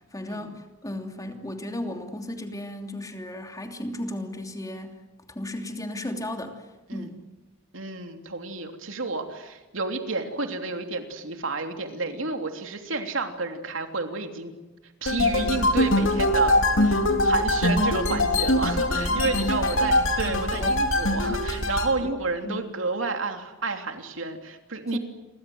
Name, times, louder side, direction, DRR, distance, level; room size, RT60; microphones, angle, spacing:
voice 1, 0.1-5.0 5.3-7.2 19.2-19.7 20.5-20.8 22.0-22.1 22.4-22.7 24.9-25.0, left 1 dB, 20° left, 4 dB, 3.0 m, -35 dB
voice 2, 7.7-14.5 15.0-16.5 16.8-25.0, right 3 dB, 75° right, 5 dB, 3.1 m, -30 dB
sound 1, 15.1-21.9, left 1 dB, 75° left, 3.3 m, -23 dB
30.0 x 23.5 x 7.9 m, 1.1 s
head